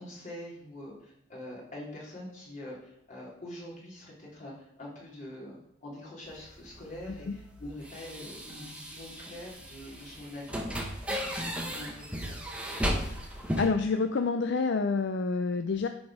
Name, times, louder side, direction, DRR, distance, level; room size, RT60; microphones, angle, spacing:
voice 1, 0.0-12.4, left 1 dB, 35° left, -5 dB, 3.3 m, -44 dB
sound 1, 6.3-13.7, equal, 5° right, 1.1 m, -36 dB
voice 2, 13.6-15.9, left 4 dB, 60° left, 7 dB, 0.5 m, -28 dB
10.5 x 4.1 x 4.9 m, 0.76 s
head